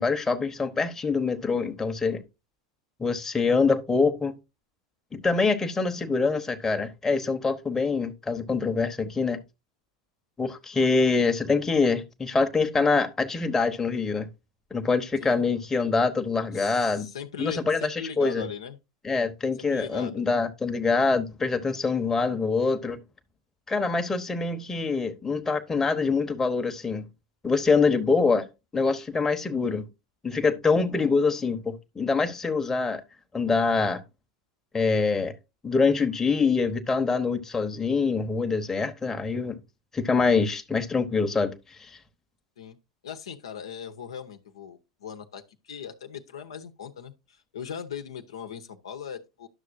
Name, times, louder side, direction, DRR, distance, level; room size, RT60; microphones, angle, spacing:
voice 1, 0.0-2.2 3.0-4.3 5.1-9.4 10.4-14.3 14.7-17.1 17.4-18.5 19.0-23.0 23.7-27.0 27.4-28.5 28.7-29.9 30.2-33.0 33.3-34.0 34.7-35.3 35.6-39.6 39.9-41.5 41.8-41.9, left 4 dB, 15° left, 1.0 m, -25 dB
voice 2, 15.2-15.5 16.5-18.8 19.6-20.2 42.6-42.8 43.0-49.5, left 7 dB, 75° left, 0.9 m, -39 dB
11.0 x 6.5 x 2.6 m
hypercardioid pair, 85°, 3 cm